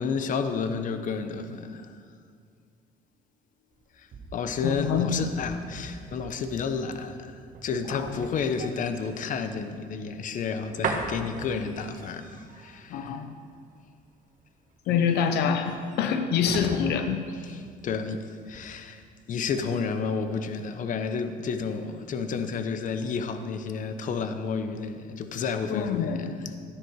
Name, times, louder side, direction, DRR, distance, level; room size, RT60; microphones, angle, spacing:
voice 1, 0.0-2.0 4.0-13.2 17.4-19.0 19.3-26.5, left 5 dB, 50° left, 9 dB, 0.9 m, -31 dB
sound 1, 3.7-18.1 18.4-18.7, right 4 dB, 50° right, 1.5 m, -40 dB
voice 2, 4.6-5.2 7.9-8.1 12.9-13.3 14.9-17.2 25.7-26.3, left 7 dB, 75° left, 8 dB, 0.8 m, -26 dB
13.0 x 10.5 x 4.7 m, 2.2 s
cardioid pair, 110°, 17 cm